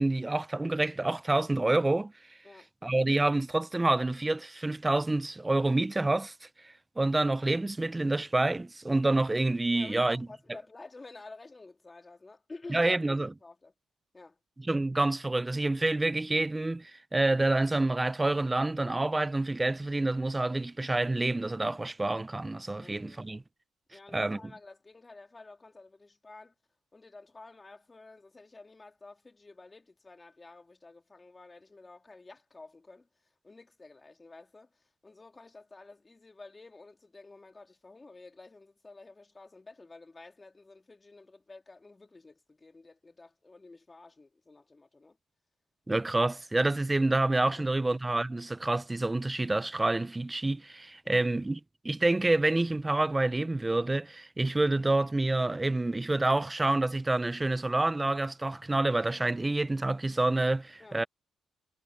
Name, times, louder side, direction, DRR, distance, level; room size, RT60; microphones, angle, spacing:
voice 1, 0.0-2.1 2.8-10.3 12.7-13.3 14.6-23.4 24.1-24.4 45.9-51.6 51.8-61.0, right 2 dB, 15° right, 0.6 m, -28 dB
voice 2, 9.7-13.0 13.4-13.7 14.1-14.4 22.8-23.3 23.9-26.5 26.9-33.1 33.4-45.2 47.5-47.9 51.0-51.3 60.8-61.1, left 3 dB, 25° left, 3.5 m, -51 dB
cardioid pair, 95°, 0 cm